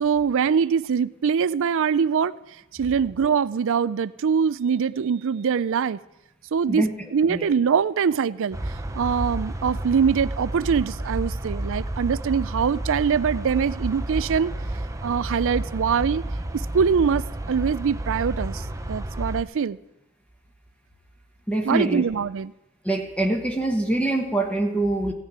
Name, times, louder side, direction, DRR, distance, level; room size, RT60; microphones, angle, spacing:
voice 1, 0.0-2.3 2.7-6.0 6.5-6.8 7.1-8.6 8.9-14.5 15.0-16.2 16.5-19.8 21.6-22.5, right 6 dB, 60° right, 18 dB, 0.4 m, -23 dB
sound 1, 8.5-19.4, right 1 dB, 15° right, 0.6 m, -31 dB
voice 2, 21.5-22.0 22.8-25.1, right 1 dB, 5° left, 2 dB, 1.2 m, -24 dB
15.5 x 6.5 x 9.4 m, 0.93 s
head